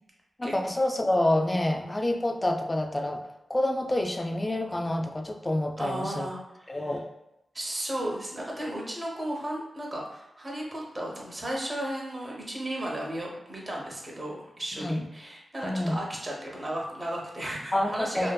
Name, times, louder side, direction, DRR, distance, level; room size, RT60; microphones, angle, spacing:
voice 1, 0.4-3.2 3.5-6.3 6.7-7.1 14.7-15.0 15.6-16.0 17.7-18.3, left 1 dB, 20° left, 4 dB, 0.3 m, -27 dB
voice 2, 5.8-7.0 7.5-18.3, right 1 dB, 30° right, -2 dB, 0.7 m, -34 dB
2.6 x 2.4 x 2.2 m, 0.90 s
cardioid pair, 65°, 0 cm